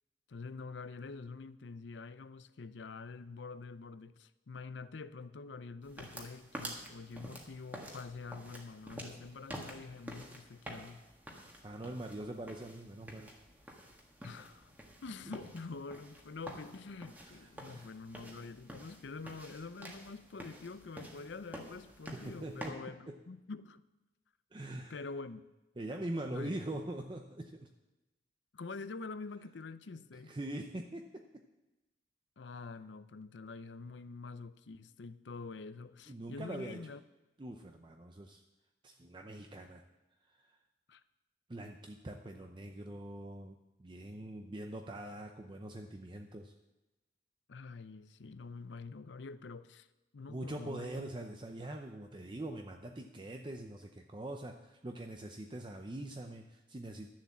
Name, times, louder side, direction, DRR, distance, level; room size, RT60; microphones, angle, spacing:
voice 1, 0.3-11.0 14.2-14.8 15.0-23.8 24.7-25.4 26.3-26.5 28.5-30.4 32.4-37.0 40.9-41.0 47.5-49.9 50.1-51.1, left 4 dB, 80° left, 0.6 m, -46 dB
sound 1, 5.8-22.7, right 1 dB, 10° right, 1.6 m, -49 dB
voice 2, 11.6-13.3 17.2-17.9 22.2-22.8 23.1-23.2 24.5-25.0 25.8-27.7 30.1-31.4 36.1-36.8 37.4-38.4 38.8-39.8 40.3-40.6 41.5-46.5 50.3-57.1, right 1 dB, 25° right, 0.6 m, -43 dB
12.0 x 7.3 x 7.3 m
head